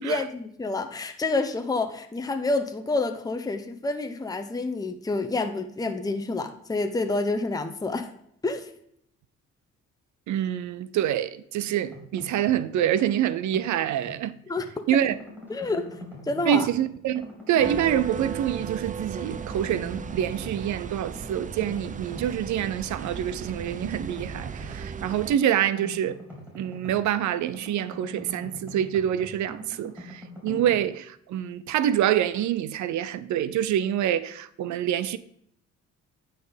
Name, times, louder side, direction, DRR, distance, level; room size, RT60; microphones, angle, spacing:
voice 1, 0.0-8.1 8.4-8.7 14.5-14.7 14.9-15.0 15.5-16.7 30.5-30.6, left 3 dB, 10° left, 0.8 m, -28 dB
voice 2, 10.3-14.4 14.9-15.2 16.5-26.2 26.5-35.2, right 10 dB, 75° right, 0.6 m, -26 dB
sound 1, 11.7-12.7 13.0-14.7 15.1-16.9 17.1-18.9 19.2-20.7 21.1-22.8 23.1-27.1 27.4-30.8, left 1 dB, 5° right, 3.8 m, -44 dB
sound 2, 17.6-25.4, right 6 dB, 25° right, 0.4 m, -36 dB
9.3 x 4.3 x 5.1 m
cardioid pair, 90°, 30 cm